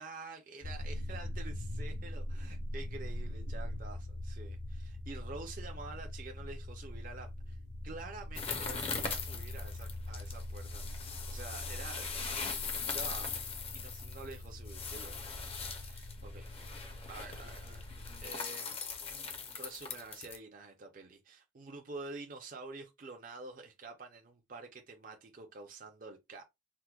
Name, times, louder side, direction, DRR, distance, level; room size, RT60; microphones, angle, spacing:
voice 1, 0.0-7.3 7.8-12.2 12.8-13.3 13.7-15.5 15.8-16.6 17.1-17.8 18.2-26.4, right 3 dB, 45° right, 0.5 m, -48 dB
sound 1, 0.6-18.2, left 1 dB, 60° left, 0.8 m, -42 dB
sound 2, 8.3-20.4, left 5 dB, 30° left, 0.5 m, -40 dB
4.5 x 2.1 x 2.2 m
head